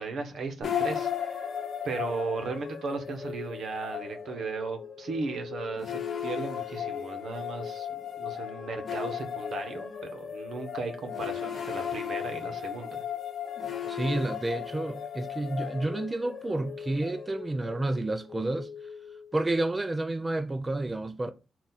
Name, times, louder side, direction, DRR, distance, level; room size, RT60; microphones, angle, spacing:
voice 1, 0.0-1.5 1.8-13.0, right 4 dB, 70° right, 0.9 m, -36 dB
sound 1, 0.6-19.7, left 8 dB, 60° left, 0.8 m, -36 dB
voice 2, 13.8-18.7 19.3-21.3, right 2 dB, 25° right, 0.4 m, -30 dB
3.9 x 2.4 x 4.0 m
cardioid pair, 80°, 0 cm